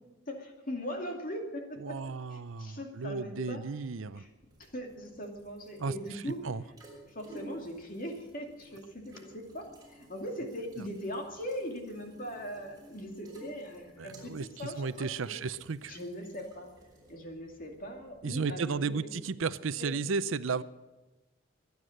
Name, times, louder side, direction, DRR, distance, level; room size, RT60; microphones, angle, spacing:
voice 1, 0.3-2.0 2.3-3.6 4.1-4.3 4.6-6.4 7.1-15.4 15.9-16.7 17.1-19.1 19.8-20.0, equal, 40° left, 3 dB, 2.5 m, -40 dB
voice 2, 1.8-4.2 5.8-5.9 6.4-6.6 14.0-15.9 18.2-20.6, right 4 dB, 70° right, 15 dB, 0.6 m, -34 dB
sound 1, 3.9-18.9, equal, 20° right, 5.6 m, -55 dB
23.5 x 9.6 x 6.5 m, 1.1 s
head